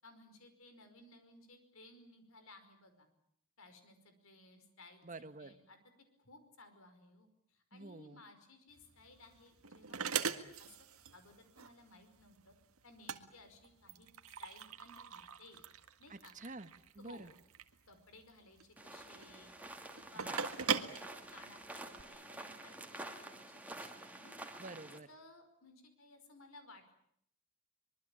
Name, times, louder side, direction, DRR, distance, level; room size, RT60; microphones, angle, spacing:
voice 1, 0.0-3.1 3.6-5.8 6.2-10.7 11.0-12.5 12.8-14.1 14.4-15.6 16.0-16.3 17.0-17.3 17.9-24.7 25.1-26.9, left 2 dB, 70° left, 8 dB, 5.3 m, -59 dB
voice 2, 5.0-5.5 7.7-8.2 16.1-17.3 20.1-20.4 24.6-25.1, right 2 dB, 35° right, 11 dB, 1.4 m, -49 dB
sound 1, 8.7-22.0, right 6 dB, 75° right, 1.8 m, -42 dB
sound 2, 18.8-25.0, right 2 dB, 5° right, 2.7 m, -48 dB
25.0 x 23.0 x 8.7 m, 0.69 s
head